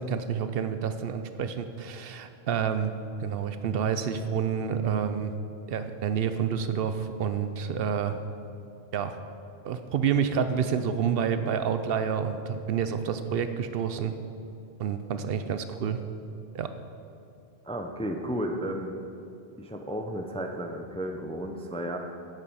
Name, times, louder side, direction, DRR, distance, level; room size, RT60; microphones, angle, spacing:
voice 1, 0.0-2.9 3.2-5.3 5.7-8.2 8.9-9.2 9.6-14.1 14.8-16.0 16.5-16.7, right 7 dB, 70° right, 9 dB, 0.7 m, -28 dB
voice 2, 17.6-18.9 19.6-22.0, equal, 10° left, 3 dB, 0.4 m, -33 dB
8.5 x 7.4 x 5.5 m, 2.7 s
omnidirectional pair, 1.0 m